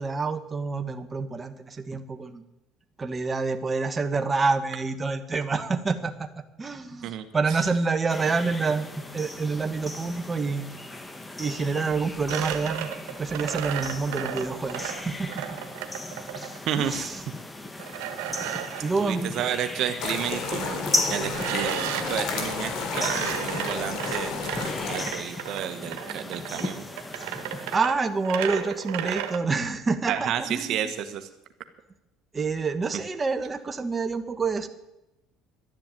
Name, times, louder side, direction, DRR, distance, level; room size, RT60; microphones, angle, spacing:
voice 1, 0.0-2.4 3.0-6.3 6.6-10.7 11.4-12.9 13.2-15.4 16.8-17.2 18.3-18.4 18.8-19.3 27.7-30.9 32.3-34.7, right 4 dB, 20° right, 7 dB, 1.4 m, -27 dB
sound 1, 8.1-27.8, left 2 dB, 15° left, 1.6 m, -36 dB
sound 2, 12.3-16.6 17.8-18.9 21.3-22.2 22.9-29.4, right 11 dB, 85° right, 1.5 m, -33 dB
voice 2, 16.7-17.1 19.0-20.8 21.1-21.8 22.0-26.8 30.1-31.3, right 9 dB, 60° right, 9 dB, 1.3 m, -31 dB
sound 3, 20.0-25.1, left 4 dB, 60° left, 3.6 m, -31 dB
12.0 x 10.5 x 9.0 m, 0.91 s
cardioid pair, 110°, 0 cm